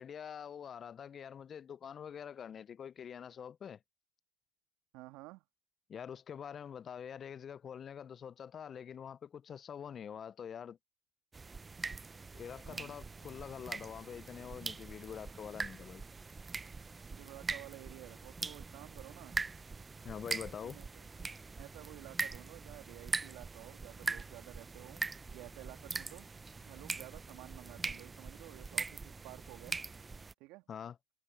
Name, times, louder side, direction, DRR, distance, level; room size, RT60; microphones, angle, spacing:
voice 1, 0.0-3.8 5.9-10.8 12.3-16.0 20.0-20.8 30.7-31.0, left 8 dB, 35° left, 0.6 m, -45 dB
voice 2, 4.9-5.4 12.7-13.0 17.0-19.4 20.6-21.3 21.6-25.0 25.3-26.3 26.6-29.8 30.4-30.6, right 21 dB, 60° right, 2.2 m, -52 dB
sound 1, 11.3-30.3, right 4 dB, 20° right, 0.8 m, -42 dB
hypercardioid pair, 80°, 0 cm